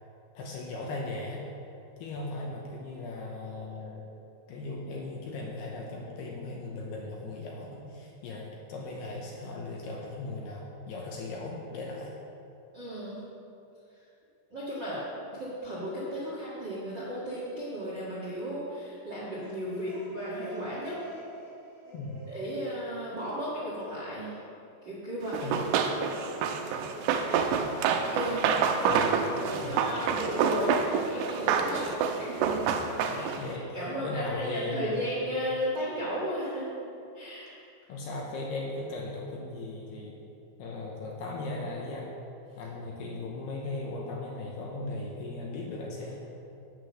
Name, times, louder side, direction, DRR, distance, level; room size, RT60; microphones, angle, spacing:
voice 1, 0.3-1.5 2.0-4.0 4.5-12.1 15.3-15.4 21.9-22.2 25.4-25.6 28.9-29.8 33.1-35.1 37.9-40.2 40.6-42.1 42.6-46.2, left 2 dB, 75° left, -2 dB, 2.6 m, -37 dB
voice 2, 12.7-13.2 14.5-15.0 15.3-21.0 22.3-24.4 24.8-25.6 27.9-28.4 28.7-29.1 29.4-32.8 33.1-36.7 37.1-37.5, equal, 55° right, -8 dB, 1.2 m, -35 dB
sound 1, 19.3-23.9, right 1 dB, 30° left, 1.7 m, -47 dB
Run, 25.3-33.5, right 6 dB, 85° right, 3.1 m, -28 dB
9.2 x 8.3 x 6.3 m, 2.7 s
omnidirectional pair, 5.5 m